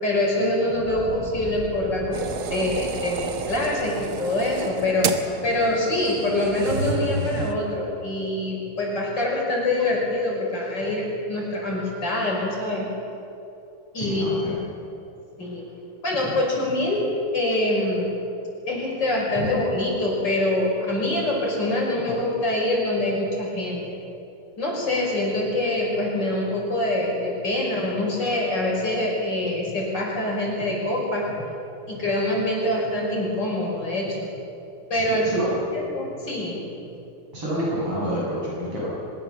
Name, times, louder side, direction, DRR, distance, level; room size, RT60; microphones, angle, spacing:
voice 1, 0.0-5.1 5.4-12.9 13.9-14.6 15.4-15.6 16.0-18.1 18.7-24.0 24.6-31.4 31.9-34.2 34.9-35.3 35.7-36.6, left 1 dB, 50° left, -2 dB, 6.1 m, -25 dB
Fire, 0.7-5.9, equal, 5° left, 7.0 m, -40 dB
sound 1, 2.1-7.5, right 4 dB, 70° right, 2.0 m, -30 dB
voice 2, 14.0-14.5 19.4-19.5 34.9-35.6 37.3-38.9, equal, 90° right, -6 dB, 8.3 m, -28 dB
23.5 x 21.0 x 7.1 m, 2.8 s
omnidirectional pair, 2.4 m